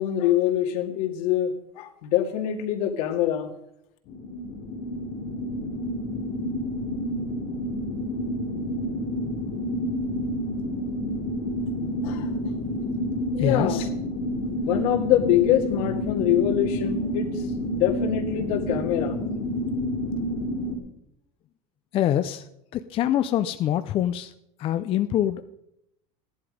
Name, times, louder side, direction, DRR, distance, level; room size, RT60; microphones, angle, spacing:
voice 1, 0.0-3.5 12.0-12.3 13.3-13.8 14.5-17.4 17.7-19.2, left 11 dB, 75° left, 2 dB, 2.2 m, -24 dB
sound 1, 4.1-20.8, equal, 50° left, 2.3 m, -29 dB
voice 2, 13.4-13.9 21.9-24.3 24.6-25.6, left 11 dB, 30° left, 10 dB, 0.4 m, -25 dB
14.0 x 11.0 x 5.0 m, 0.79 s
cardioid pair, 160°, 19 cm